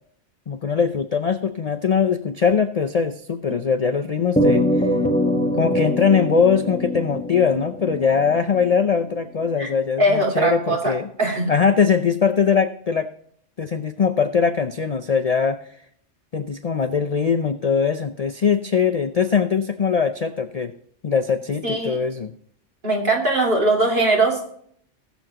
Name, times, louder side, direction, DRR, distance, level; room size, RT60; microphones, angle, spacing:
voice 1, 0.5-4.7 5.6-11.1 11.5-13.1 13.6-15.6 16.3-20.7 21.0-22.3, left 6 dB, 45° left, 9 dB, 0.5 m, -21 dB
sound 1, 4.4-9.0, equal, 5° left, 1.0 m, -23 dB
voice 2, 10.0-11.5 21.6-22.0 22.8-24.5, right 2 dB, 45° right, 0 dB, 2.6 m, -20 dB
20.5 x 7.1 x 2.9 m, 0.64 s
omnidirectional pair, 1.2 m